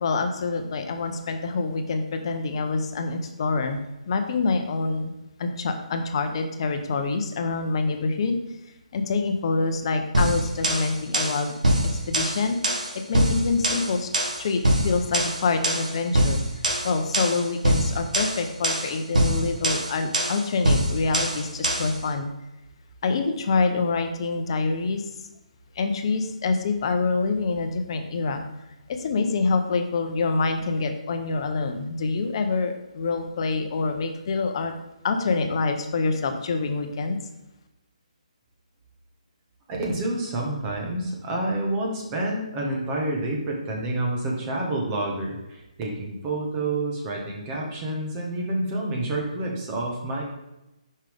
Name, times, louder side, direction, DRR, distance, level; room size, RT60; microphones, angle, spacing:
voice 1, 0.0-3.8 4.1-5.1 5.4-8.4 8.9-11.5 11.8-12.6 13.1-14.1 14.4-16.4 16.8-22.3 23.0-25.0 25.8-28.4 28.9-34.7 35.0-37.2, left 4 dB, 45° left, 6 dB, 0.8 m, -26 dB
sound 1, 10.1-22.0, right 1 dB, 85° right, 1.9 m, -24 dB
voice 2, 39.8-50.2, right 2 dB, 20° right, -1 dB, 1.4 m, -28 dB
7.2 x 5.6 x 3.5 m, 0.95 s
hypercardioid pair, 155°, 4 cm